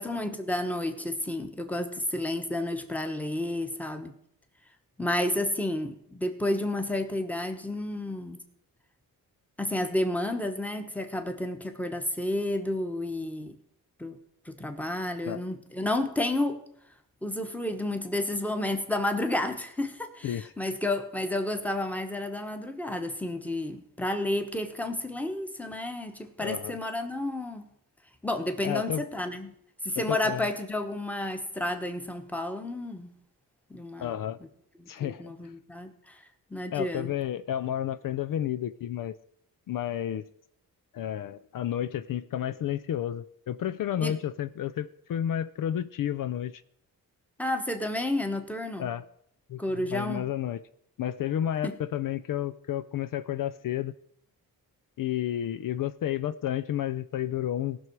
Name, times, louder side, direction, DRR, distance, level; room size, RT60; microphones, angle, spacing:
voice 1, 0.0-4.1 5.0-8.4 9.6-13.6 14.0-14.2 14.4-16.6 17.2-27.7 28.2-29.5 29.8-33.1 33.7-34.2 34.8-36.2 36.5-37.1 44.0-44.2 47.4-48.9 49.6-50.3 51.6-51.8, left 1 dB, 5° left, 7 dB, 1.2 m, -31 dB
voice 2, 26.4-26.8 28.6-29.0 30.0-30.5 34.0-34.4 34.9-35.3 36.7-39.2 39.7-40.3 40.9-46.6 48.8-49.0 49.5-50.6 51.0-53.9 55.0-57.8, left 10 dB, 65° left, 13 dB, 0.5 m, -31 dB
18.0 x 6.1 x 4.7 m, 0.71 s
wide cardioid pair, 120°, 35 cm